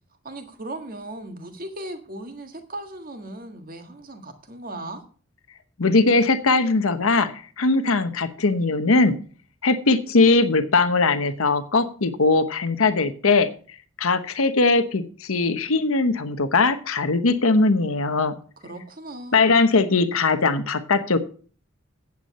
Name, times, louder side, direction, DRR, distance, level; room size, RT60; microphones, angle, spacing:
voice 1, 0.2-5.0 18.6-19.5, right 1 dB, 40° right, 6 dB, 1.7 m, -37 dB
voice 2, 5.8-9.2 9.6-13.5 14.0-18.4 19.3-21.2, left 3 dB, 80° left, 10 dB, 1.0 m, -20 dB
9.4 x 8.4 x 5.4 m, 0.41 s
head